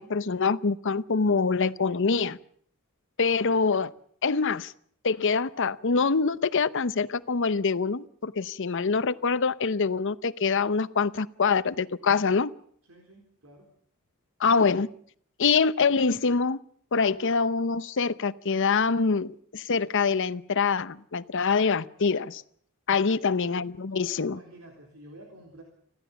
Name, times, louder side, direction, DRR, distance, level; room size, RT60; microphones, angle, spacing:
voice 1, 0.0-2.4 3.2-3.9 4.2-4.7 5.0-12.5 14.4-14.9 15.4-16.6 16.9-22.4 22.9-24.4, left 5 dB, 60° left, 15 dB, 0.8 m, -25 dB
voice 2, 12.9-13.7 22.9-23.2 23.8-25.6, right 1 dB, 75° right, 2 dB, 3.8 m, -50 dB
26.0 x 15.5 x 7.0 m, 0.64 s
head